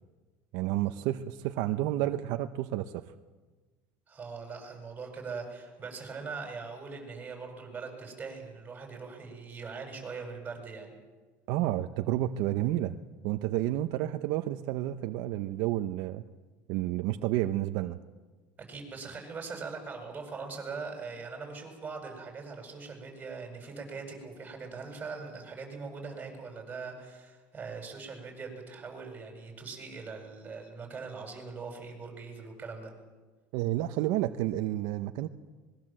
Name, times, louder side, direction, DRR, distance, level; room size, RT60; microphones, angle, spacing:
voice 1, 0.5-3.1 11.5-12.9 13.2-16.2 16.7-18.0 33.5-35.3, right 14 dB, 70° right, 8 dB, 0.9 m, -30 dB
voice 2, 4.1-10.9 18.7-32.9, right 4 dB, 20° right, 2 dB, 8.0 m, -41 dB
25.0 x 21.0 x 7.7 m, 1.3 s
cardioid pair, 130°, 7 cm